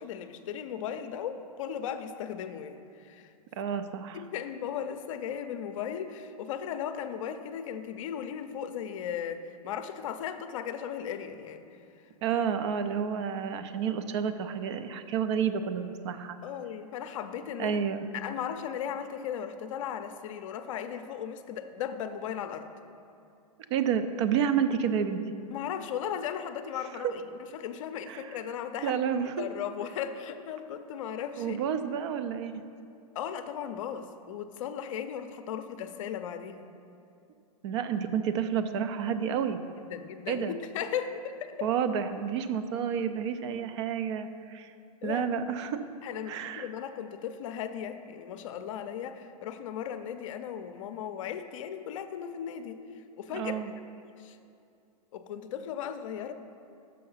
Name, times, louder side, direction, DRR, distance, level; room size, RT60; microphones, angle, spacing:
voice 1, 0.0-3.3 4.1-11.6 16.4-17.8 18.1-22.7 25.5-27.2 27.5-29.0 29.4-31.6 33.1-36.7 39.9-41.7 45.0-45.3 46.0-52.8 53.2-53.6 54.0-54.4 55.1-56.3, left 8 dB, 55° left, 9 dB, 0.5 m, -36 dB
voice 2, 3.6-4.2 12.2-16.4 17.6-18.0 23.7-25.2 27.0-27.1 28.1-28.4 28.8-29.4 31.4-32.6 37.6-39.6 40.3-40.6 41.6-44.7 45.0-45.8 46.3-46.7 53.3-53.7, right 7 dB, 45° right, 10 dB, 0.5 m, -30 dB
6.3 x 5.6 x 5.6 m, 2.6 s
hypercardioid pair, 140°, 20 cm